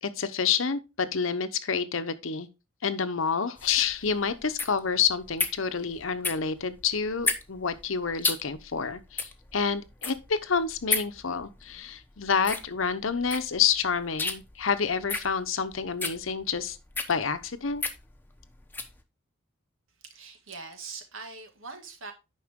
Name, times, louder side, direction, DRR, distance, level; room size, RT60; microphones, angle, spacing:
voice 1, 0.0-2.5 2.8-16.8 17.1-17.8, left 6 dB, 75° left, 0.9 m, -28 dB
sound 1, 3.6-19.0, left 3 dB, 10° left, 0.9 m, -34 dB
voice 2, 20.0-22.1, right 4 dB, 75° right, 2.0 m, -42 dB
9.6 x 5.7 x 3.6 m
head